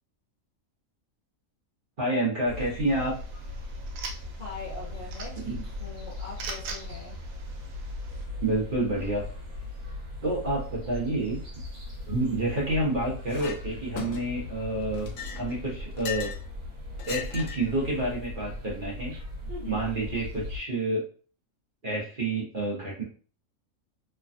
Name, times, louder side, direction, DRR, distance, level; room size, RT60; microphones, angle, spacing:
voice 1, 2.0-3.1 5.5-5.6 8.4-9.2 10.2-11.4 12.1-15.1 15.3-16.3 17.1-19.1 19.7-21.0 21.8-23.0, right 2 dB, 45° right, -5 dB, 0.9 m, -28 dB
sound 1, 2.4-20.6, left 2 dB, 60° right, 1.3 m, -39 dB
sound 2, 2.9-8.2, right 4 dB, 80° right, 1.0 m, -44 dB
voice 2, 4.4-7.2 12.1-12.4 19.5-19.8, left 4 dB, 40° left, -6 dB, 0.8 m, -42 dB
Chink clink, 13.3-13.6 14.0-14.5 14.9-16.4 17.0-17.7, left 8 dB, 70° left, 0.9 m, -38 dB
3.2 x 2.2 x 2.5 m, 0.41 s
omnidirectional pair, 1.5 m